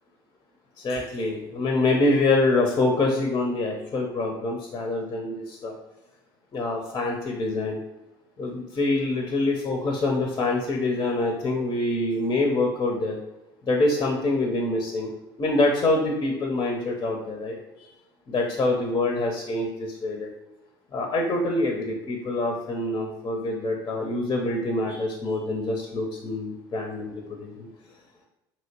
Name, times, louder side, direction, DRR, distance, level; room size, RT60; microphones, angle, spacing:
voice 1, 0.8-5.7 6.5-7.8 8.4-13.2 13.6-15.1 15.4-17.6 18.3-20.3 20.9-27.7, left 2 dB, 30° left, 1 dB, 0.6 m, -25 dB
2.9 x 2.8 x 2.8 m, 0.97 s
hypercardioid pair, 75°, 13 cm